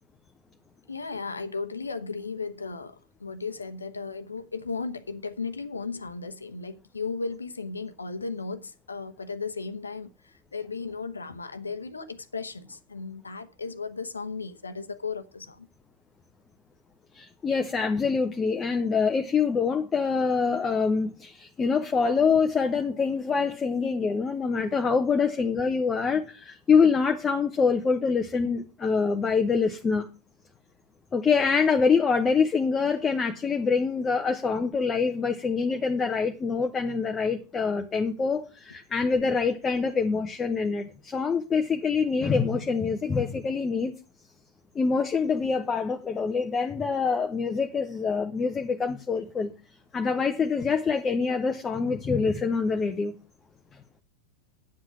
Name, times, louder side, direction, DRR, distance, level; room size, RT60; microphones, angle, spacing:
voice 1, 0.9-15.7, left 4 dB, 75° left, 1.0 m, -35 dB
voice 2, 17.1-30.1 31.1-43.9 44.7-49.5 49.9-53.2, left 5 dB, 20° left, 1.0 m, -25 dB
10.0 x 7.7 x 6.0 m
figure-of-eight pair, 90°, 0 cm